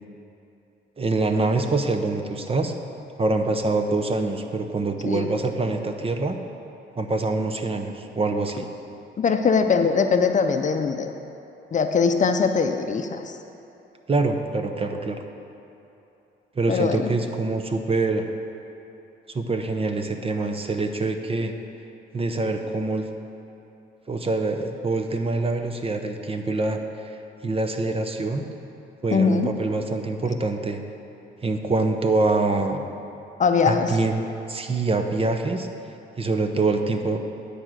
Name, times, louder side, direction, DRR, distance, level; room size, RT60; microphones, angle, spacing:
voice 1, 1.0-2.7 3.2-6.4 7.0-8.7 14.1-15.2 16.6-18.3 19.3-21.5 22.1-23.1 24.1-26.8 27.4-28.4 29.0-30.8 31.4-32.8 33.7-35.7 36.2-37.2, right 3 dB, 30° right, 6 dB, 0.8 m, -25 dB
voice 2, 9.2-11.1 11.7-13.4 16.7-17.1 29.1-29.5 33.4-33.9, left 5 dB, 40° left, 6 dB, 0.6 m, -21 dB
10.0 x 5.0 x 7.5 m, 2.9 s
cardioid pair, 90°, 20 cm